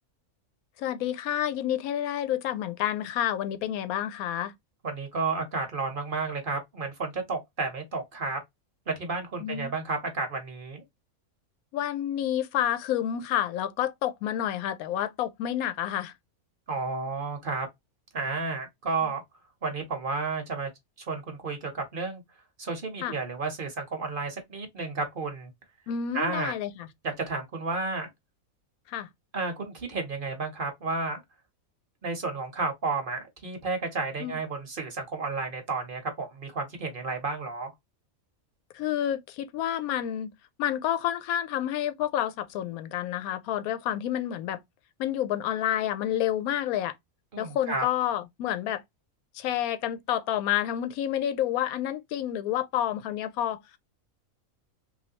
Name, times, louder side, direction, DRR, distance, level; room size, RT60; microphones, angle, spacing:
voice 1, 0.8-4.5 9.4-9.7 11.7-16.1 23.0-23.1 25.9-26.9 28.9-29.1 34.2-34.4 38.7-40.3 40.6-44.6 45.0-46.9 47.4-48.8 49.3-53.6, left 11 dB, 85° left, 1.0 m, -29 dB
voice 2, 4.8-8.4 8.9-10.8 16.7-17.7 18.1-19.2 19.6-20.7 21.1-22.2 22.6-25.5 26.1-26.5 27.0-28.1 29.3-31.2 32.0-37.7 47.3-47.9, right 3 dB, 45° right, 0.9 m, -32 dB
3.1 x 2.6 x 2.7 m
omnidirectional pair, 1.5 m